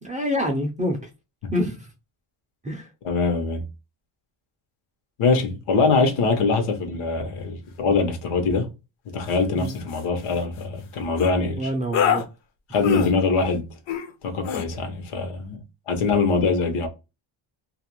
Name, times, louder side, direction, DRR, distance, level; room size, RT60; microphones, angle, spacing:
voice 1, 0.0-1.0 1.5-1.9 2.6-2.9 9.5-9.8 11.6-12.3, equal, 15° right, 0.4 m, -26 dB
voice 2, 3.0-3.6 5.2-8.7 9.1-11.7 12.7-13.7 14.2-15.6 15.9-16.9, left 4 dB, 85° left, 0.9 m, -23 dB
sound 1, 9.2-9.4 9.7-10.0 11.2-11.3 11.9-12.2 12.8-13.1 13.9-14.1 14.4-14.6, left 9 dB, 65° left, 0.6 m, -25 dB
2.4 x 2.1 x 2.9 m
cardioid pair, 145°, 49 cm